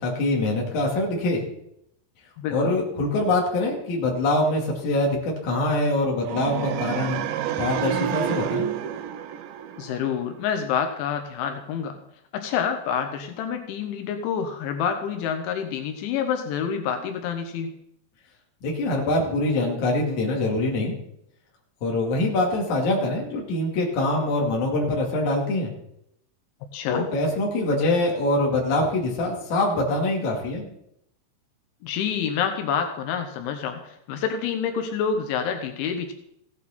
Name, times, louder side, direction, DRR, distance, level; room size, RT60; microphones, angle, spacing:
voice 1, 0.0-1.4 2.5-7.2 7.6-8.6 18.6-20.9 21.8-25.7 26.9-30.7, left 2 dB, 50° left, -1 dB, 3.2 m, -24 dB
voice 2, 2.4-2.7 9.8-12.0 12.3-17.7 26.7-27.1 31.8-36.1, left 7 dB, 85° left, 6 dB, 3.3 m, -28 dB
sound 1, 6.2-10.3, right 10 dB, 80° right, 3.1 m, -29 dB
16.0 x 9.0 x 4.3 m, 0.77 s
omnidirectional pair, 5.3 m